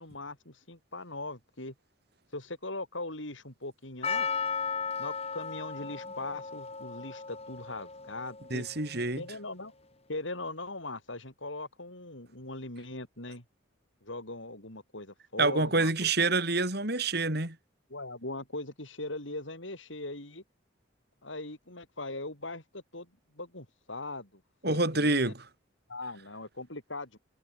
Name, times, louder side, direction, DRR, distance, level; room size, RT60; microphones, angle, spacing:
voice 1, 0.0-1.7 2.3-4.3 5.0-8.7 9.2-9.7 10.1-13.4 14.0-16.1 17.9-20.4 21.2-23.1 23.3-25.3 25.9-27.2, left 2 dB, 75° left, 7.0 m, -40 dB
Percussion, 4.0-9.0, left 5 dB, 30° left, 3.4 m, -36 dB
voice 2, 8.5-9.2 15.4-17.6 24.6-25.4, right 3 dB, 55° right, 4.9 m, -27 dB
head